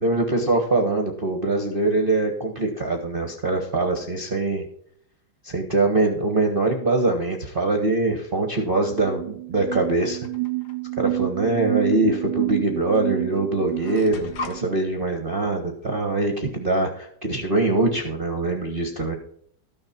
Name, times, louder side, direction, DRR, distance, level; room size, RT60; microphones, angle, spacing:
voice 1, 0.0-4.7 5.4-10.2 11.0-19.2, right 2 dB, 30° right, 3 dB, 1.2 m, -23 dB
sound 1, 8.6-8.7 8.9-14.6, right 24 dB, 75° right, 1.3 m, -29 dB
sound 2, 10.2-10.8 11.9-12.0 13.0-13.1 13.3-14.6, left 4 dB, 55° left, 1.5 m, -36 dB
13.5 x 6.5 x 4.3 m, 0.64 s
omnidirectional pair, 2.3 m